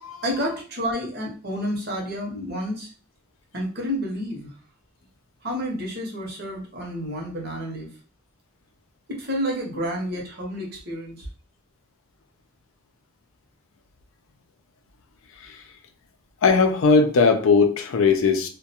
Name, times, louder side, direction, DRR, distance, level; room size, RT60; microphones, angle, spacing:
voice 1, 0.2-2.9 3.5-4.5 5.4-7.9 9.1-11.3, equal, 50° right, -1 dB, 0.8 m, -30 dB
voice 2, 16.4-18.5, left 4 dB, 70° left, 7 dB, 0.4 m, -19 dB
2.3 x 2.1 x 2.7 m, 0.39 s
head